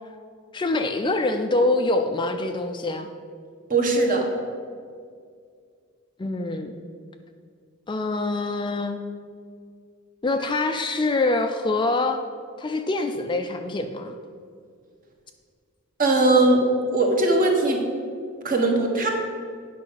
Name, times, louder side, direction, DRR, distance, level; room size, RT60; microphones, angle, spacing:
voice 1, 0.5-3.1 6.2-6.7 7.9-9.0 10.2-12.2 12.6-14.1, left 2 dB, 20° left, 6 dB, 0.4 m, -25 dB
voice 2, 3.7-4.3 16.0-16.6 16.9-17.8 18.4-19.1, right 2 dB, 40° right, 1 dB, 1.4 m, -19 dB
8.8 x 5.5 x 5.8 m, 2.2 s
head